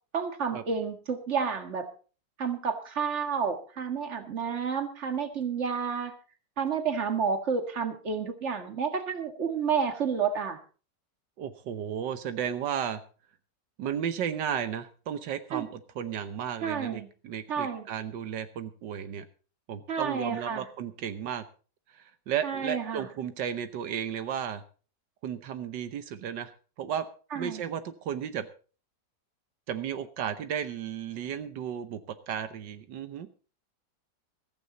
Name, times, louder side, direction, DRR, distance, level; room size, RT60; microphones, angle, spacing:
voice 1, 0.1-1.9 2.4-6.1 6.6-10.6 15.5-15.6 16.6-17.1 17.5-17.9 19.9-20.7 22.4-23.1 27.3-27.6, right 6 dB, 40° right, 6 dB, 2.0 m, -30 dB
voice 2, 11.4-13.0 13.8-19.2 19.7-21.4 21.9-24.6 25.2-27.1 27.3-28.5 29.7-33.3, right 8 dB, 85° right, 10 dB, 1.6 m, -34 dB
15.5 x 14.5 x 4.0 m, 0.38 s
omnidirectional pair, 1.9 m